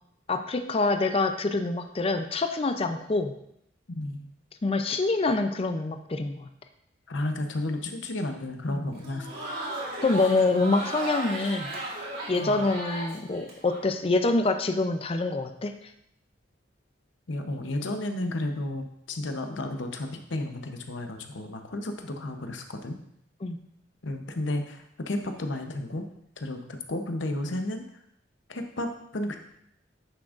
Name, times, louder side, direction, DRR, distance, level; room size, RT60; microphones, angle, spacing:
voice 1, 0.3-3.3 4.6-6.5 8.7-8.8 10.0-11.7 12.3-15.7 23.4-23.6, left 3 dB, 30° left, 8 dB, 0.5 m, -26 dB
voice 2, 3.9-4.2 7.1-9.3 12.4-12.6 17.3-23.0 24.0-26.1 26.4-27.9 28.5-29.4, left 1 dB, 85° left, 5 dB, 0.8 m, -32 dB
Crowd, 8.9-13.8, right 1 dB, 55° right, 2.1 m, -36 dB
9.8 x 6.1 x 2.5 m, 0.75 s
head